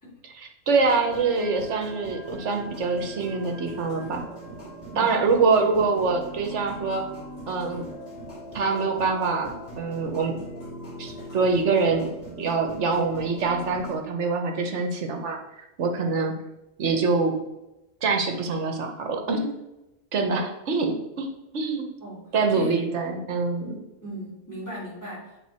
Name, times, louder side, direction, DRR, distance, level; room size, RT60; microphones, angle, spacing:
voice 1, 0.2-4.2 5.0-7.0 7.5-7.8 8.5-10.4 11.0-12.1 12.4-16.3 16.8-17.3 18.0-19.5 20.1-21.9 22.3-23.8, right 4 dB, 60° right, 3 dB, 1.2 m, -25 dB
sound 1, 0.8-14.0, equal, 45° left, 2.3 m, -40 dB
voice 2, 22.5-22.8 24.0-25.4, equal, 15° left, -7 dB, 2.6 m, -37 dB
7.9 x 3.8 x 4.2 m, 0.95 s
omnidirectional pair, 1.4 m